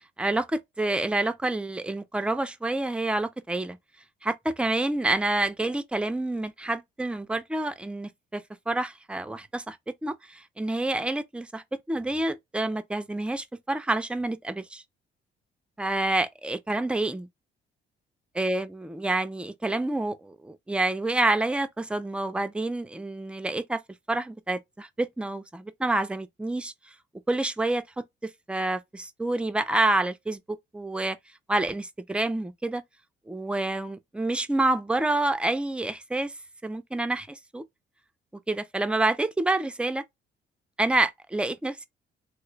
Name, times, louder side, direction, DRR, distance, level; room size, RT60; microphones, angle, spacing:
voice 1, 0.2-3.8 4.2-9.8 10.0-14.8 15.8-17.3 18.4-23.8 24.1-26.7 27.3-28.0 28.5-30.4 30.7-31.2 31.5-32.8 33.3-36.3 36.6-37.6 38.5-40.0 40.8-41.9, right 2 dB, 5° right, 0.4 m, -28 dB
3.2 x 2.3 x 3.1 m
cardioid pair, 90°, 20 cm